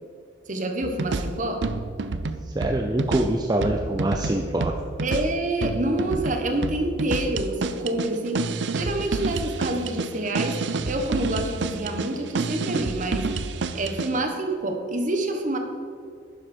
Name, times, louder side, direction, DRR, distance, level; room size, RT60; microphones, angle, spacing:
voice 1, 0.5-1.6 5.0-10.6 10.9-13.3 13.7-15.6, right 1 dB, 40° right, 4 dB, 1.3 m, -27 dB
sound 1, 0.8-14.2, right 3 dB, 70° right, 0.6 m, -29 dB
voice 2, 2.5-4.7, right 1 dB, 20° right, 2 dB, 0.6 m, -24 dB
11.5 x 9.5 x 4.5 m, 2.3 s
head